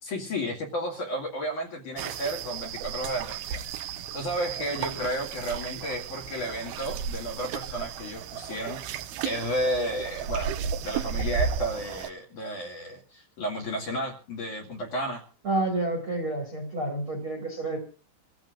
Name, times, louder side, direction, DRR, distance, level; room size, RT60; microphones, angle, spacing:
voice 1, 0.0-3.6 4.1-8.8 9.2-10.5 10.8-15.2, equal, 50° left, 3 dB, 3.2 m, -32 dB
sound 1, 2.0-12.1, right 7 dB, 75° right, 2.3 m, -34 dB
voice 2, 15.4-17.8, right 2 dB, 40° right, 3 dB, 2.2 m, -29 dB
27.0 x 14.5 x 2.5 m, 0.37 s
omnidirectional pair, 5.6 m